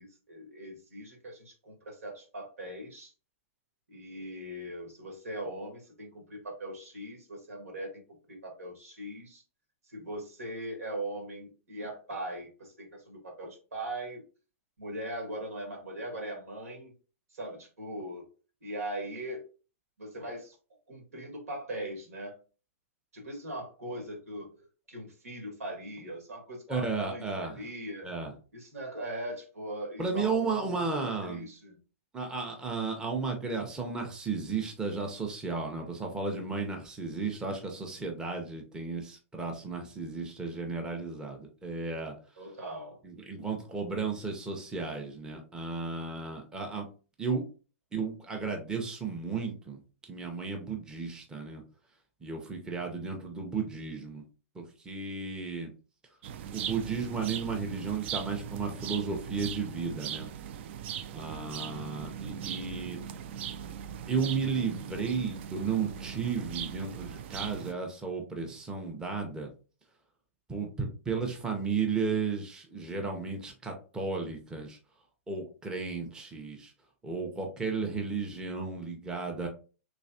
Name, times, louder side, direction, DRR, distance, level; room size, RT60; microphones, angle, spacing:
voice 1, 0.0-3.1 3.9-8.0 8.3-9.4 9.9-14.2 14.8-16.9 17.3-18.2 18.6-19.4 20.0-20.6 20.9-22.4 23.1-28.1 28.5-31.8 42.4-43.0, right 1 dB, 90° right, 2 dB, 1.6 m, -40 dB
voice 2, 26.7-27.6 28.0-28.3 30.0-31.5 32.1-42.1 43.0-46.9 47.2-47.4 47.9-49.8 50.1-51.6 52.2-54.2 54.5-55.7 56.5-60.3 61.1-63.0 64.1-69.5 70.5-74.8 75.3-76.7 77.0-79.5, right 4 dB, 10° right, 1 dB, 0.6 m, -34 dB
sound 1, 56.2-67.7, right 9 dB, 50° right, 0.3 m, -39 dB
3.2 x 3.1 x 2.7 m, 0.36 s
hypercardioid pair, 135°, 8 cm